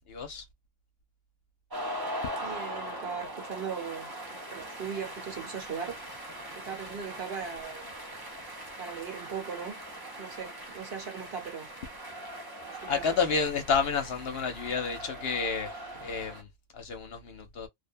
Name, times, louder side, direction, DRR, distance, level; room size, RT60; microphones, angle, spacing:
voice 1, 0.1-0.5 12.9-17.7, left 5 dB, 60° left, 0.8 m, -30 dB
sound 1, 1.7-16.4, right 1 dB, 30° right, 0.4 m, -41 dB
voice 2, 2.4-4.1 4.5-6.0 6.6-7.9 8.8-9.8 10.2-11.7 12.6-13.0, right 6 dB, 55° right, 1.1 m, -38 dB
2.4 x 2.1 x 2.5 m
omnidirectional pair, 1.3 m